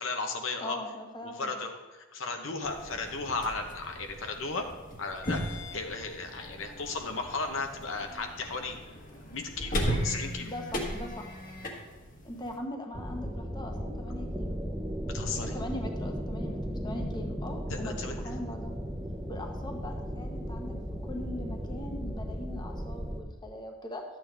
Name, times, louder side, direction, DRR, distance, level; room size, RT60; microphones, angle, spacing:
voice 1, 0.0-0.8 1.2-4.7 5.0-8.8 9.2-10.5 15.1-15.5 17.7-18.3, left 3 dB, 70° left, 4 dB, 0.9 m, -35 dB
voice 2, 0.6-1.6 10.4-11.3 12.2-14.6 15.4-18.7 19.3-20.7 21.0-24.0, left 1 dB, 20° left, 3 dB, 1.1 m, -41 dB
sound 1, 2.6-12.6, equal, 45° left, 1.4 m, -37 dB
sound 2, 12.9-23.2, equal, ahead, 0.8 m, -36 dB
12.0 x 8.8 x 3.4 m, 1.2 s
head